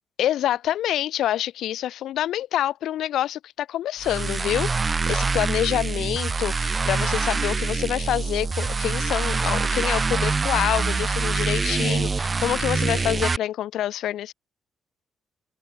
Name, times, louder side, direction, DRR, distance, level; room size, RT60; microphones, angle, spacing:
voice 1, 0.2-14.3, left 12 dB, 80° left, 7.7 m, -27 dB
sound 1, 4.0-13.4, right 4 dB, 30° right, 5.4 m, -25 dB
open air
cardioid pair, 90°, 0 cm